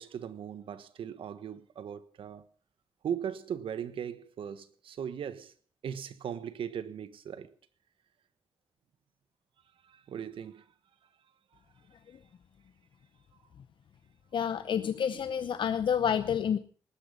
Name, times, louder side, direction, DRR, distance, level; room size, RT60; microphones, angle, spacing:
voice 1, 0.0-2.4 3.0-5.5 5.8-7.5 9.8-10.6, right 8 dB, 85° right, 1.4 m, -38 dB
voice 2, 14.3-16.6, left 8 dB, 65° left, 0.8 m, -29 dB
19.0 x 12.0 x 5.5 m
wide cardioid pair, 125°, 9 cm